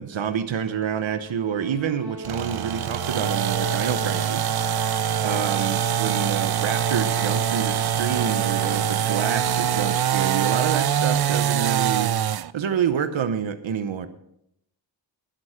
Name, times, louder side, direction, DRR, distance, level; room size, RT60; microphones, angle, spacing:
voice 1, 0.0-4.5 5.2-12.1 12.5-14.1, right 8 dB, 80° right, 10 dB, 0.9 m, -28 dB
sound 1, 1.1-11.6, left 1 dB, 55° left, 5.3 m, -37 dB
sound 2, 2.2-12.5, right 10 dB, 55° right, 0.5 m, -24 dB
sound 3, 3.1-9.7, right 1 dB, 15° left, 5.9 m, -42 dB
12.0 x 11.0 x 5.0 m, 0.75 s
wide cardioid pair, 125°, 46 cm